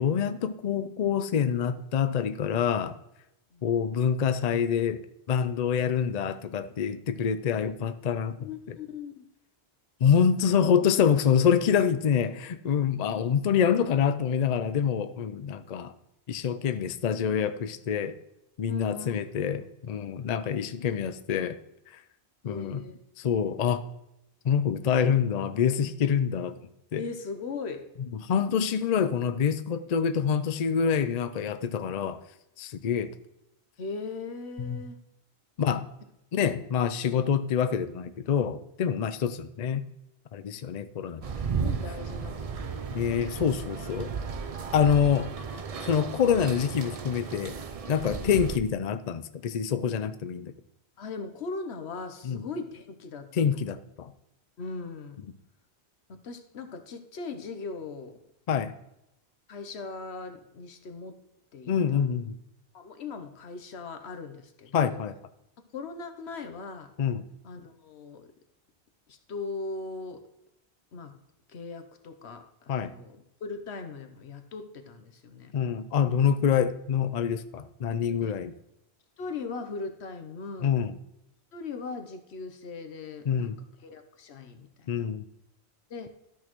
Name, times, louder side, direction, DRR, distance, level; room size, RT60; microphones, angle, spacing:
voice 1, 0.0-3.0 3.6-5.0 5.3-8.4 8.7-8.8 10.0-15.9 16.3-18.1 18.6-21.6 21.9-22.0 22.4-22.8 23.2-23.8 24.4-26.6 26.9-27.0 28.2-32.2 32.6-33.1 34.6-34.8 35.6-35.9 36.3-39.8 40.3-41.2 42.9-44.1 44.7-45.3 45.8-47.5 47.9-50.5 52.2-52.4 53.3-54.1 58.5-58.7 61.7-62.4 64.7-65.1 67.0-67.2 72.7-72.9 75.5-78.5 80.6-81.0 83.3-83.5 84.9-85.2, left 7 dB, 50° left, 11 dB, 0.5 m, -26 dB
voice 2, 8.4-9.3 10.3-10.4 18.7-19.7 22.4-23.0 23.5-23.7 27.0-27.9 33.8-35.0 41.6-43.4 48.1-48.4 51.0-53.8 54.6-55.2 56.1-58.2 59.5-61.2 61.5-62.1 62.7-65.0 65.7-66.9 67.4-68.3 69.1-70.2 70.9-71.2 71.5-75.6 78.1-78.4 79.2-80.8 81.5-83.5 83.8-84.9 85.9-86.1, left 4 dB, 80° left, 7 dB, 1.1 m, -39 dB
sound 1, 41.2-48.6, right 5 dB, 40° right, 0.6 m, -34 dB
12.5 x 6.2 x 3.0 m, 0.86 s
omnidirectional pair, 1.1 m